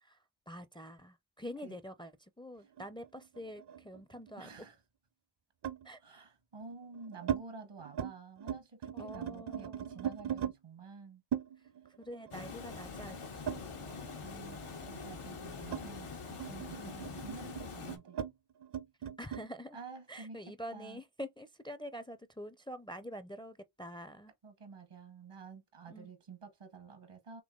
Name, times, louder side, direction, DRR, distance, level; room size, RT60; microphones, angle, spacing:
voice 1, 0.5-4.5 5.8-6.0 8.9-10.1 12.0-13.9 16.8-17.2 19.2-19.8 20.1-24.3 25.9-26.1, equal, 10° left, 0.4 m, -46 dB
sound 1, 2.8-4.3 5.6-5.9 6.6-7.4 7.8-8.1 8.4-10.6 11.3-14.2 14.5-19.5, right 9 dB, 55° right, 0.5 m, -40 dB
voice 2, 4.4-4.8 6.0-11.2 14.2-18.2 19.7-20.4 20.7-21.0 24.4-27.4, right 4 dB, 85° right, 1.3 m, -50 dB
Water, 12.3-18.0, left 5 dB, 90° left, 1.1 m, -45 dB
3.7 x 2.9 x 3.7 m
cardioid pair, 45°, 49 cm